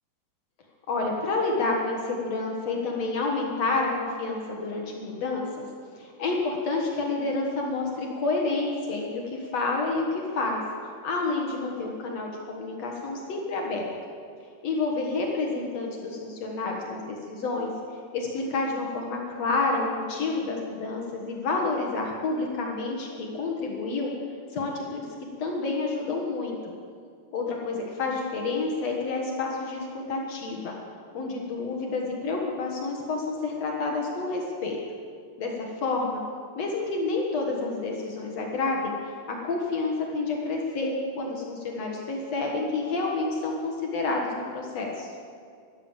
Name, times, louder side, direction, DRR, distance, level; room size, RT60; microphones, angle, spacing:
voice 1, 0.9-5.6 6.0-10.6 11.0-13.9 14.6-17.7 18.1-24.1 24.5-25.1 25.4-26.5 27.3-30.7 31.1-34.8 35.4-36.2 36.6-38.9 39.3-45.1, left 3 dB, 65° left, 0 dB, 1.6 m, -29 dB
13.0 x 12.0 x 7.3 m, 2.2 s
omnidirectional pair, 5.1 m